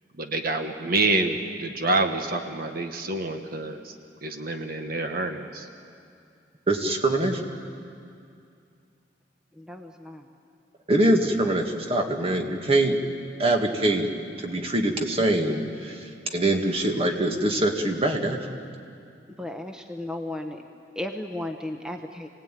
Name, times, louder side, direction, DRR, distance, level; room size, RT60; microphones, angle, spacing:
voice 1, 0.2-3.9 4.2-5.7, right 2 dB, 55° right, 5 dB, 1.4 m, -27 dB
voice 2, 6.7-7.4 10.9-13.0 13.4-18.6, right 1 dB, 35° right, 3 dB, 2.1 m, -24 dB
voice 3, 9.6-10.2 19.4-20.6 21.0-22.3, left 1 dB, 5° right, 4 dB, 1.0 m, -34 dB
28.0 x 18.0 x 9.2 m, 2.4 s
head